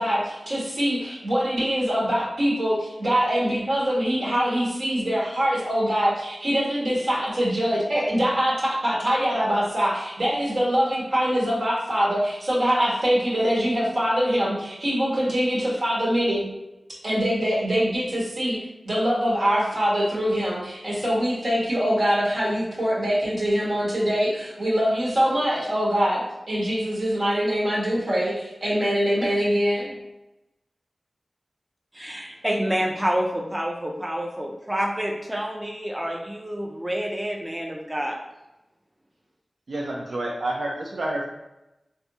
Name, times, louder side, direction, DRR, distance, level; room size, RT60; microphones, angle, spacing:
voice 1, 0.0-16.4 17.0-18.6 18.8-26.2 26.5-29.9, equal, 65° right, -5 dB, 1.2 m, -23 dB
voice 2, 31.9-38.2, equal, 15° right, -1 dB, 0.4 m, -28 dB
voice 3, 39.7-41.2, right 1 dB, 85° right, -3 dB, 0.4 m, -29 dB
3.4 x 2.6 x 2.7 m, 0.95 s
wide cardioid pair, 55°, 0 cm